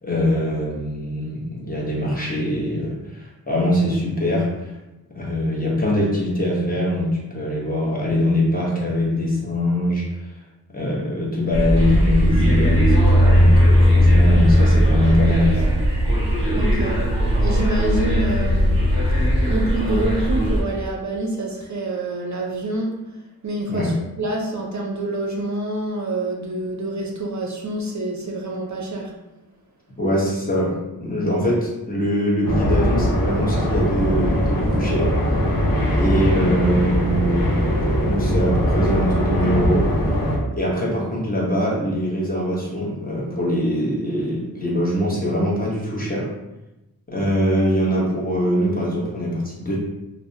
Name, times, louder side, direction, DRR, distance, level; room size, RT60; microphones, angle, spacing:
voice 1, 0.0-4.7 5.1-10.0 10.7-15.7 23.7-23.9 30.0-35.2 35.9-37.6 38.0-39.9 40.5-46.3 47.1-49.8, equal, 25° left, -5 dB, 0.9 m, -23 dB
sound 1, 11.5-20.6, equal, 15° right, 1.2 m, -17 dB
voice 2, 16.5-18.8 19.5-23.0 23.4-29.2, right 2 dB, 50° right, 0 dB, 0.5 m, -27 dB
sound 2, 32.4-40.4, equal, 60° left, 0.7 m, -21 dB
3.1 x 2.0 x 2.7 m, 0.98 s
wide cardioid pair, 60°, 38 cm